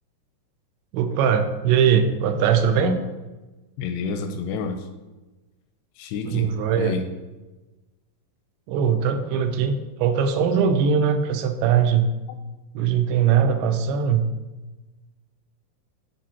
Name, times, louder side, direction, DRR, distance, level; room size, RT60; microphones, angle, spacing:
voice 1, 0.9-3.0 6.3-6.9 8.7-12.1 12.8-14.3, right 7 dB, 85° right, 7 dB, 2.9 m, -21 dB
voice 2, 3.8-4.9 6.0-6.5 6.8-7.0, left 5 dB, 85° left, 7 dB, 2.5 m, -29 dB
10.0 x 4.6 x 4.3 m, 1.2 s
omnidirectional pair, 5.1 m